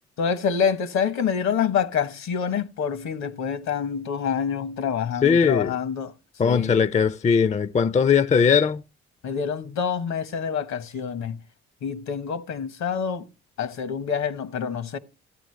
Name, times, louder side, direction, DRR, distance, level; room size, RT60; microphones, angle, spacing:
voice 1, 0.2-6.1 6.4-6.8 9.2-11.4 11.8-13.3 13.6-15.0, left 7 dB, 65° left, 1.1 m, -27 dB
voice 2, 5.2-5.7 6.4-8.8, left 6 dB, 25° left, 0.4 m, -19 dB
14.0 x 9.0 x 3.2 m
hypercardioid pair, 45°, 30 cm